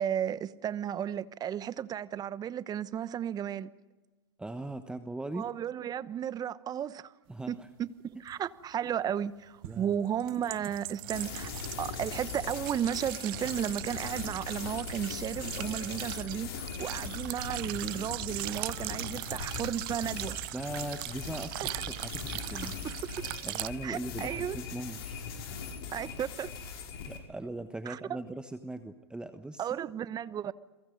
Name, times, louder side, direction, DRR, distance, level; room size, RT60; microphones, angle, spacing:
voice 1, 0.0-3.7 5.3-7.1 7.5-11.5 11.8-20.4 21.6-21.8 23.2-23.3 23.8-24.6 25.9-26.5 27.9-28.0 29.6-30.5, right 9 dB, 30° right, 1.0 m, -34 dB
voice 2, 4.4-5.5 7.3-7.7 9.6-10.0 20.5-22.8 23.4-25.2 25.6-25.7 27.0-29.7, right 2 dB, 5° right, 1.3 m, -40 dB
sound 1, 8.3-8.4 9.6-23.7, right 21 dB, 55° right, 0.7 m, -40 dB
sound 2, 11.1-27.2, left 6 dB, 65° left, 5.5 m, -40 dB
30.0 x 23.0 x 5.3 m
hypercardioid pair, 100°, 14 cm